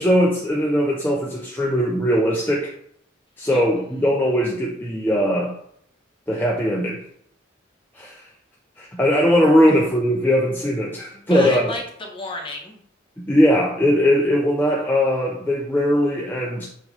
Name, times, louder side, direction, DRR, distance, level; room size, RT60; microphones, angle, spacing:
voice 1, 0.0-2.7 3.4-5.5 6.3-7.0 7.9-8.2 8.8-11.6 13.2-16.7, equal, 10° left, -2 dB, 0.8 m, -20 dB
voice 2, 3.5-4.1 9.7-9.8 11.1-12.8, left 1 dB, 25° left, 0 dB, 1.5 m, -33 dB
7.6 x 3.2 x 5.3 m, 0.68 s
head